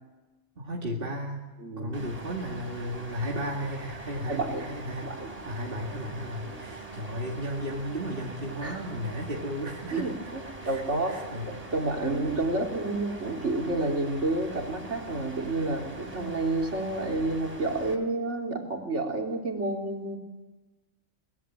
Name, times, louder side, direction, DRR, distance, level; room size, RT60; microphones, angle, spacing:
voice 1, 0.6-1.4 1.8-5.1 5.4-10.1 10.6-11.5, equal, 45° right, -1 dB, 2.5 m, -34 dB
voice 2, 1.6-2.0 4.3-4.7 5.0-5.4 6.5-6.6 8.6-8.8 9.9-11.2 11.4-20.2, right 2 dB, 65° right, 1 dB, 3.9 m, -30 dB
sound 1, 1.9-18.0, right 2 dB, 30° right, 3.0 m, -43 dB
24.0 x 20.5 x 7.5 m, 1.2 s
omnidirectional pair, 1.3 m